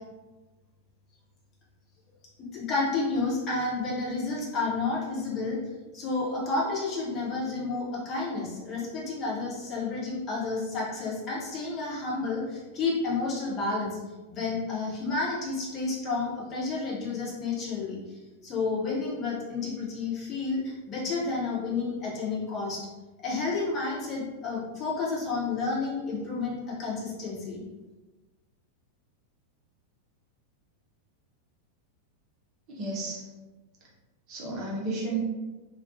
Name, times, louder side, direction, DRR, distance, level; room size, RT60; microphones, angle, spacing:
voice 1, 2.4-5.6 5.9-14.0 14.3-22.9 23.2-27.6, left 3 dB, 30° left, -5 dB, 0.8 m, -31 dB
voice 2, 32.7-33.3 34.3-35.2, right 3 dB, 35° right, -4 dB, 0.7 m, -32 dB
2.4 x 2.1 x 2.6 m, 1.2 s
figure-of-eight pair, 90°, 0 cm